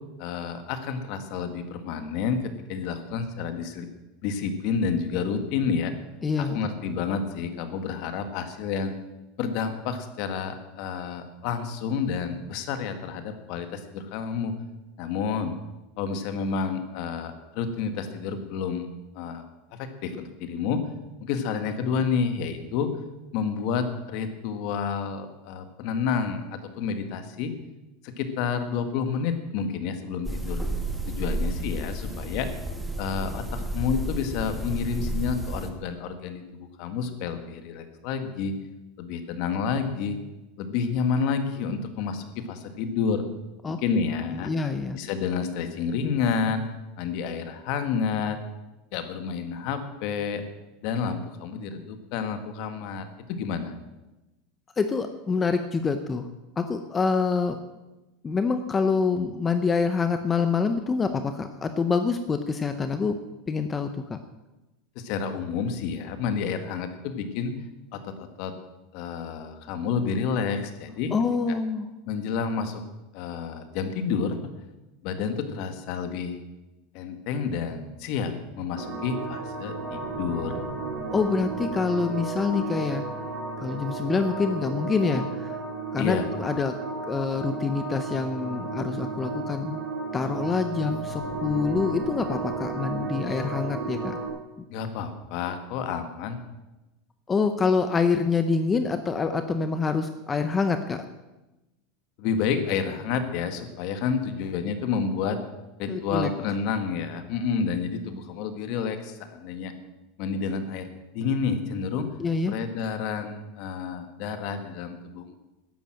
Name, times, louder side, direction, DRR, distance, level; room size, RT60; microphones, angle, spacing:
voice 1, 0.2-3.9 4.2-5.9 6.4-9.0 9.4-14.5 15.0-15.6 16.0-18.9 19.2-19.4 19.7-20.9 21.2-22.9 23.3-27.5 28.0-30.6 31.1-32.5 33.0-38.6 39.0-40.2 40.6-43.2 43.7-44.5 44.9-46.6 47.0-48.4 48.9-50.4 50.8-53.7 65.0-67.5 67.9-68.5 68.9-71.1 71.5-71.6 72.1-72.8 73.1-74.4 75.0-76.4 76.9-80.6 86.0-86.3 94.7-96.4 102.2-105.4 105.8-109.7 110.2-110.9 111.1-112.1 112.5-115.3, left 6 dB, 50° left, 8 dB, 1.8 m, -29 dB
voice 2, 6.2-6.6 43.6-43.8 44.4-45.0 54.8-56.3 56.6-57.6 58.2-63.2 63.5-64.2 71.1-71.9 81.1-83.0 83.6-85.6 85.9-86.8 87.1-89.8 90.1-94.2 97.3-101.0 105.9-106.3 112.2-112.5, left 4 dB, 15° left, 9 dB, 0.7 m, -26 dB
sound 1, 30.2-35.7, right 1 dB, ahead, 1.2 m, -31 dB
sound 2, 78.7-94.3, right 3 dB, 30° right, 3.3 m, -33 dB
12.5 x 10.5 x 7.7 m, 1.0 s
supercardioid pair, 160°, 0 cm